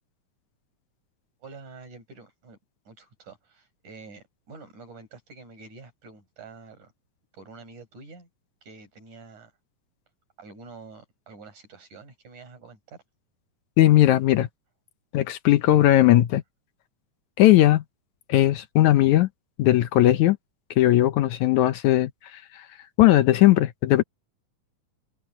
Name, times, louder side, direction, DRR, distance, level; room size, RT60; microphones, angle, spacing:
voice 1, 1.4-2.6 2.9-6.9 7.3-8.3 8.6-9.5 10.4-13.0, right 4 dB, 70° right, 7.9 m, -47 dB
voice 2, 13.8-14.5 15.1-16.4 17.4-17.8 18.3-19.3 19.6-20.4 20.8-22.4 23.0-24.0, left 14 dB, 75° left, 2.1 m, -18 dB
open air
omnidirectional pair, 3.7 m